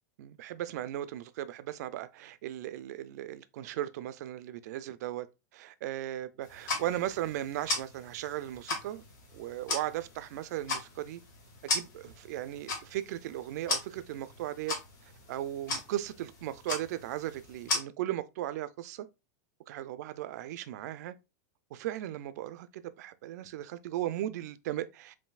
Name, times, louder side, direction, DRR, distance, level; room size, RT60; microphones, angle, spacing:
voice 1, 0.2-5.3 5.5-9.0 9.3-11.2 11.6-14.7 15.3-19.1 19.7-21.1 21.7-25.1, right 13 dB, 65° right, 0.4 m, -37 dB
sound 1, 6.4-17.8, left 2 dB, 75° left, 2.1 m, -38 dB
5.4 x 2.7 x 2.3 m
supercardioid pair, 150°, 10 cm